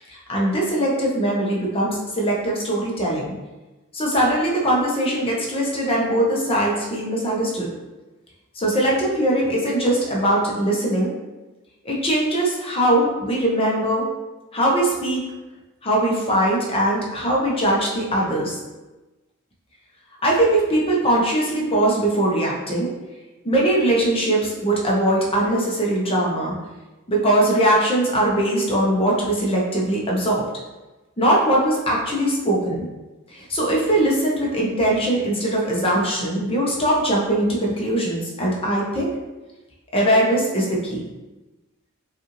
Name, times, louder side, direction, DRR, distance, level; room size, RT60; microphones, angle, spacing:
voice 1, 0.3-3.3 3.9-7.7 8.6-11.1 11.8-14.1 14.5-15.2 15.8-18.6 20.2-22.9 23.4-26.6 27.1-30.4 31.2-32.9 33.3-39.1 39.9-41.0, right 1 dB, 25° left, -3 dB, 0.9 m, -21 dB
5.3 x 2.5 x 3.1 m, 1.1 s
head